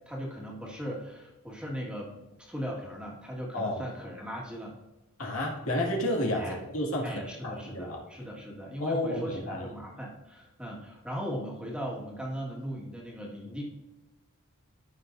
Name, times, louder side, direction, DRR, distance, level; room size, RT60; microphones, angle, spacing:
voice 1, 0.0-4.8 6.4-6.6 7.0-13.6, equal, 5° right, -3 dB, 1.8 m, -38 dB
voice 2, 3.5-3.8 5.2-6.5 6.7-8.0 8.8-9.7, left 1 dB, 80° left, -1 dB, 2.2 m, -31 dB
13.5 x 6.1 x 2.7 m, 1.0 s
head